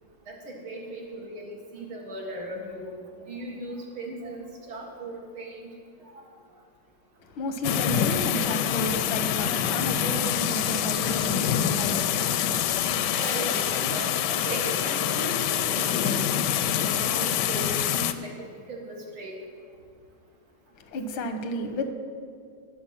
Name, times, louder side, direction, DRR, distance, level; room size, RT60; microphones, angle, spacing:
voice 1, 0.3-2.9 3.3-5.7 7.9-8.3 13.2-16.2 16.8-18.3 18.7-19.3, right 1 dB, 85° right, -1 dB, 2.8 m, -37 dB
voice 2, 7.2-12.9 20.7-21.9, left 1 dB, 90° left, 7 dB, 1.8 m, -33 dB
sound 1, 7.6-18.1, left 9 dB, 75° left, 1.1 m, -26 dB
19.0 x 6.6 x 5.8 m, 2.3 s
omnidirectional pair, 2.2 m